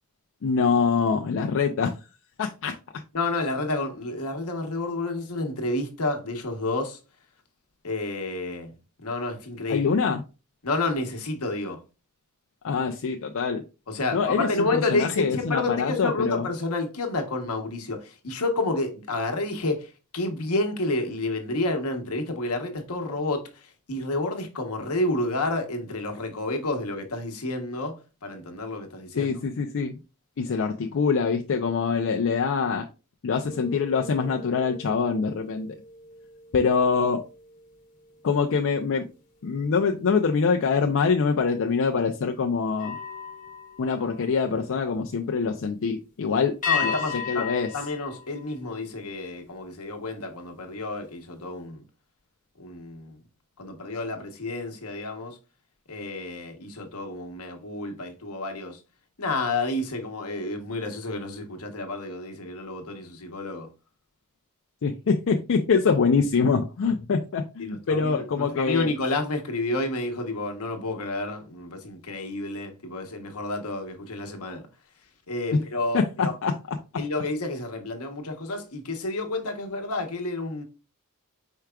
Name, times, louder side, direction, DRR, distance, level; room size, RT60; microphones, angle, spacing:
voice 1, 0.4-1.9 2.4-2.7 9.7-10.2 12.6-13.6 14.1-16.4 29.2-30.0 30.4-32.8 33.2-35.7 36.5-37.2 38.2-39.1 39.4-43.0 43.8-46.5 46.8-46.9 47.3-47.7 64.8-68.9 75.9-76.5, left 5 dB, 60° left, 0.4 m, -24 dB
voice 2, 3.1-7.0 7.8-8.7 9.0-10.0 10.6-11.8 13.9-29.3 46.7-47.5 47.7-51.8 52.6-53.2 53.6-55.4 55.9-58.8 59.2-63.7 67.6-74.6 75.3-76.3 77.0-80.6, left 2 dB, 80° left, 1.0 m, -30 dB
sound 1, 33.4-39.0 39.5-39.8 42.7-44.9 46.6-49.2, left 7 dB, 35° left, 1.0 m, -36 dB
4.7 x 4.6 x 2.3 m
head